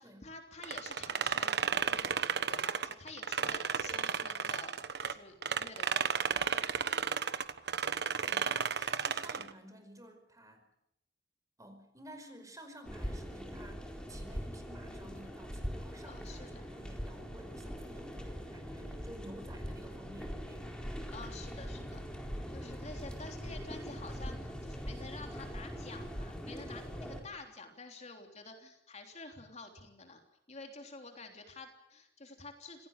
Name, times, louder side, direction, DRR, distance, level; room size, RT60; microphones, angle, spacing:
voice 1, 0.0-6.5 16.1-16.6 21.1-22.0 22.5-30.2 30.5-32.9, left 3 dB, 40° left, 4 dB, 3.4 m, -50 dB
sound 1, 0.6-5.1 5.4-9.5, right 6 dB, 65° right, 1.2 m, -33 dB
voice 2, 8.2-10.7 11.6-20.8, right 1 dB, 20° right, 7 dB, 5.1 m, -53 dB
sound 2, 12.8-27.2, equal, 5° left, 4.1 m, -42 dB
27.0 x 17.5 x 9.0 m, 0.81 s
head